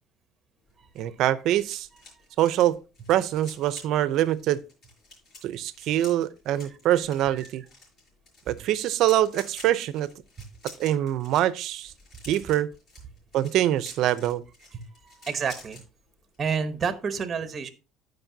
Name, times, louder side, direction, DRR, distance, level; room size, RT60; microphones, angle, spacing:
sound 1, 0.6-15.8 16.2-16.4 16.7-17.0, left 2 dB, 35° left, 6.0 m, -50 dB
voice 1, 1.0-1.9 2.4-2.8 3.1-4.6 5.4-7.6 8.5-10.1 10.8-11.9 12.3-12.7 13.3-14.4, right 13 dB, 50° right, 0.6 m, -24 dB
voice 2, 14.7-15.8 16.4-17.7, right 6 dB, 20° right, 0.9 m, -30 dB
15.0 x 5.3 x 2.7 m
cardioid pair, 175°, 0 cm